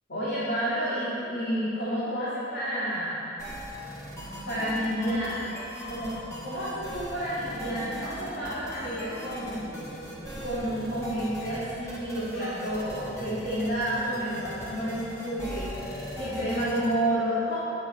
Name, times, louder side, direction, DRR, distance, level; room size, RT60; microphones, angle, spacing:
voice 1, 0.1-3.3 4.5-5.5 5.9-9.6 10.4-17.6, equal, 65° left, -11 dB, 2.0 m, -30 dB
sound 1, 3.4-16.9, equal, 20° left, 1.8 m, -39 dB
sound 2, 6.9-11.8, right 1 dB, 25° right, 1.2 m, -47 dB
9.8 x 7.2 x 4.2 m, 2.9 s
head